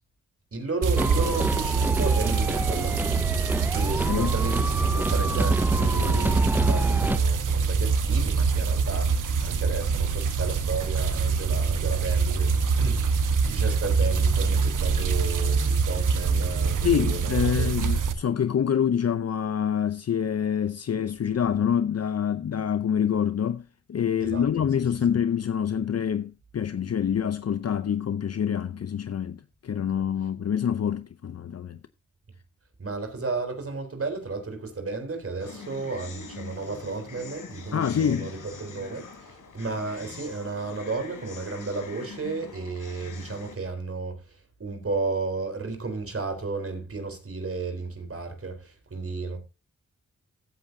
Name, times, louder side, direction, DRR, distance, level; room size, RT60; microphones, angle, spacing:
voice 1, 0.5-3.1 3.4-13.0 13.4-17.7 24.2-24.6 32.8-49.4, right 3 dB, 45° right, 3.8 m, -33 dB
sound 1, 0.8-18.1, right 5 dB, 80° right, 1.2 m, -24 dB
sound 2, 1.0-7.2, right 1 dB, 5° right, 0.5 m, -28 dB
voice 2, 4.0-4.3 16.8-31.8 37.7-38.3, left 8 dB, 55° left, 0.6 m, -26 dB
sound 3, 35.4-43.5, left 5 dB, 85° left, 3.4 m, -44 dB
15.0 x 8.5 x 2.7 m
cardioid pair, 60°, 31 cm